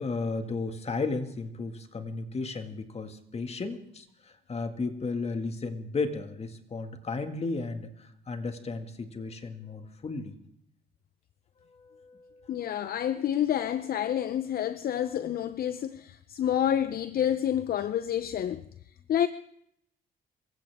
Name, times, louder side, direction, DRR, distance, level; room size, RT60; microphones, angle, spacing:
voice 1, 0.0-10.3 11.7-12.7, left 3 dB, 35° left, 2.0 m, -34 dB
voice 2, 12.5-18.6 19.1-19.3, left 10 dB, 60° left, 0.7 m, -28 dB
25.0 x 15.5 x 3.6 m
cardioid pair, 85°, 18 cm